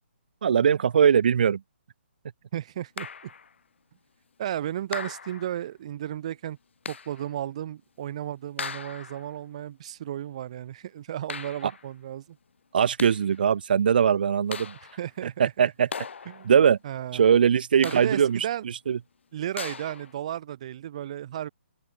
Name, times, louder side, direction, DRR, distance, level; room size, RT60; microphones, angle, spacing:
voice 1, 0.4-1.6 11.6-11.7 12.7-14.7 15.4-15.9 16.4-16.8 17.1-18.4 18.9-19.0, right 7 dB, 45° right, 0.3 m, -21 dB
voice 2, 2.5-3.1 4.4-6.6 6.9-12.4 14.8-15.4 16.3-16.5 16.8-17.2 17.8-18.6 19.3-21.5, right 11 dB, 30° right, 2.4 m, -34 dB
sound 1, 3.0-3.5 4.9-5.6 6.9-7.3 8.6-9.3 11.3-11.9 12.8-13.4 14.5-15.1 15.9-16.6 17.8-18.4 19.6-20.1, left 6 dB, 70° left, 0.9 m, -39 dB
open air
hypercardioid pair, 175°, 7 cm